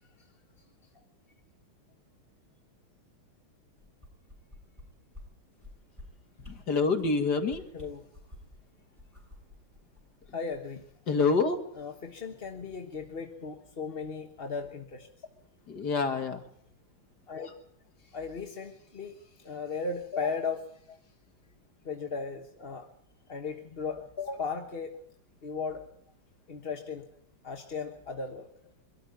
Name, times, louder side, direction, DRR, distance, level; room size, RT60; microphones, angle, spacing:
sound 1, 3.8-4.8 5.1-5.2 5.6-6.0 6.4-6.5 6.9-7.1 7.4-8.6 9.0-10.6 10.9-11.0, left 2 dB, 15° right, 8.1 m, -49 dB
voice 1, 6.7-7.6 11.1-11.6 15.7-16.4, left 4 dB, 50° left, 6 dB, 2.3 m, -26 dB
voice 2, 7.7-8.1 10.3-10.8 11.7-15.1 17.3-17.5 18.0-20.7 21.8-22.9 23.3-24.9 25.4-25.8 26.5-27.0 27.4-28.5, left 5 dB, 35° left, 4 dB, 1.2 m, -36 dB
24.5 x 13.5 x 9.4 m, 0.70 s
omnidirectional pair, 2.4 m